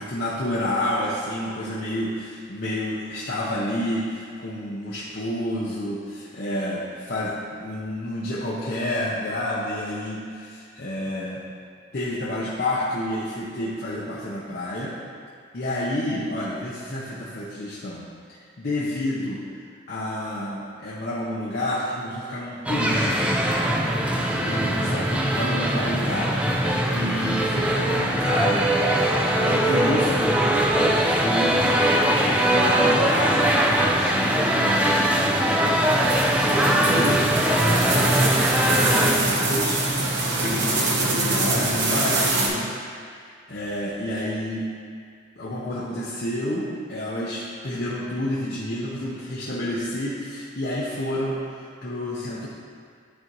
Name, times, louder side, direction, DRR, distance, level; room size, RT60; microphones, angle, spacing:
voice 1, 0.0-11.5 11.9-14.9 15.5-18.0 18.6-23.4 24.4-28.7 29.1-30.4 30.8-31.7 32.0-37.3 37.7-42.7 43.2-44.7 45.4-52.5, left 1 dB, 50° left, -7 dB, 0.7 m, -30 dB
sound 1, 22.7-39.1, right 1 dB, 5° right, 0.4 m, -21 dB
sound 2, 35.8-42.5, right 2 dB, 65° right, 1.0 m, -24 dB
10.0 x 4.3 x 3.0 m, 2.2 s
head